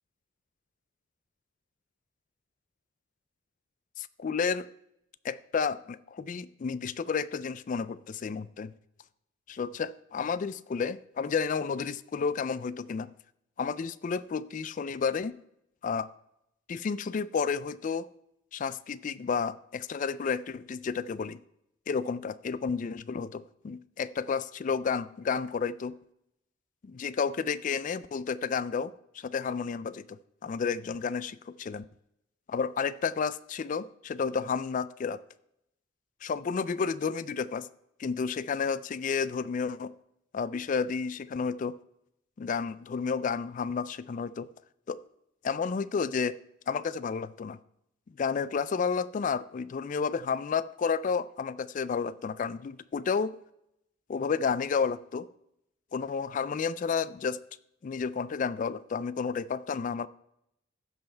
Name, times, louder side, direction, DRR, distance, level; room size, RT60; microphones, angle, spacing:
voice 1, 4.0-4.7 5.2-8.7 9.5-13.1 13.6-15.4 15.8-16.1 16.7-18.1 18.5-21.4 21.9-25.9 26.8-31.8 32.5-35.2 36.2-37.7 38.0-39.9 40.3-41.8 42.4-44.5 44.9-45.0 45.4-46.4 46.7-47.6 48.2-53.3 54.1-55.3 55.9-57.4 57.8-60.1, left 5 dB, 40° left, 18 dB, 0.3 m, -31 dB
15.5 x 5.6 x 4.4 m, 0.80 s
head